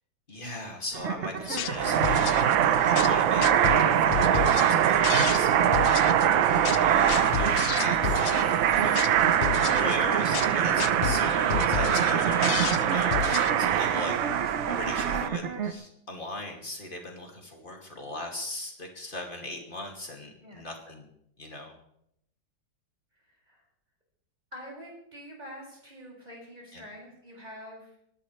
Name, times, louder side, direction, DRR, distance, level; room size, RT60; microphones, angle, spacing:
voice 1, 0.3-2.3 2.6-5.5 6.6-21.1 21.4-21.7 26.7-26.8, left 1 dB, 25° left, 1 dB, 2.6 m, -39 dB
sound 1, 0.9-15.7, right 6 dB, 45° right, 1.1 m, -33 dB
sound 2, 1.4-13.5, left 12 dB, 80° left, 1.4 m, -32 dB
sound 3, 1.6-15.3, right 10 dB, 85° right, 1.5 m, -23 dB
voice 2, 24.5-27.9, equal, 25° right, -3 dB, 5.7 m, -46 dB
26.0 x 11.0 x 3.3 m, 0.74 s
omnidirectional pair, 2.0 m